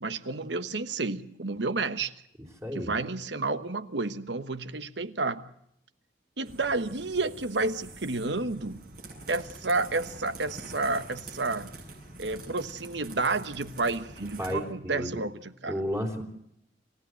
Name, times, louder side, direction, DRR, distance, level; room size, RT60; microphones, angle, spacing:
voice 1, 0.0-2.1 2.7-5.5 6.4-8.8 9.3-11.7 12.2-15.8, right 3 dB, 75° right, 12 dB, 1.2 m, -30 dB
voice 2, 2.6-2.9 14.4-15.2 15.7-16.2, equal, 15° right, 3 dB, 3.4 m, -32 dB
sound 1, 6.4-14.5, right 2 dB, 55° right, 7.5 m, -45 dB
28.0 x 15.5 x 7.7 m, 0.75 s
head